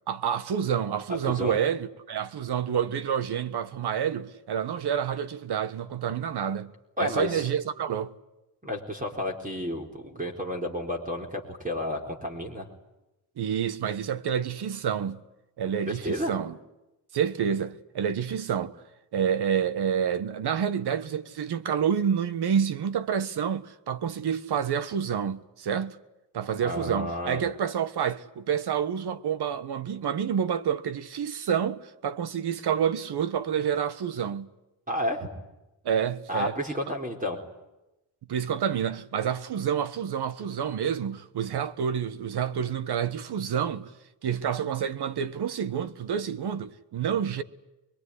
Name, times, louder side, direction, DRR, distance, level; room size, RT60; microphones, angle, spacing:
voice 1, 0.1-6.7 7.0-8.1 13.4-15.2 15.6-16.6 17.1-18.8 19.1-26.0 26.3-34.5 35.8-36.6 38.3-43.9 44.2-47.4, right 8 dB, 65° right, 1.4 m, -28 dB
voice 2, 1.3-1.6 7.0-7.5 8.6-12.7 15.9-16.4 26.6-27.4 34.9-35.3 36.3-37.4, left 1 dB, 20° right, 4.2 m, -31 dB
24.5 x 22.5 x 9.8 m
cardioid pair, 115°, 43 cm